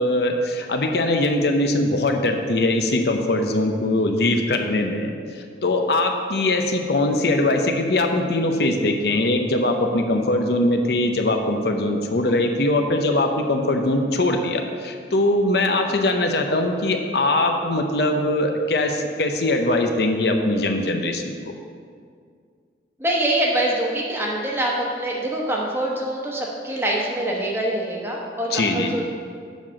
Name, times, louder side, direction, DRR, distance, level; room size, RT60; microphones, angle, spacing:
voice 1, 0.0-21.5 28.5-29.0, left 2 dB, 70° left, 4 dB, 0.7 m, -21 dB
voice 2, 23.0-29.0, right 1 dB, 15° right, -2 dB, 1.1 m, -24 dB
7.1 x 5.8 x 6.2 m, 2.2 s
head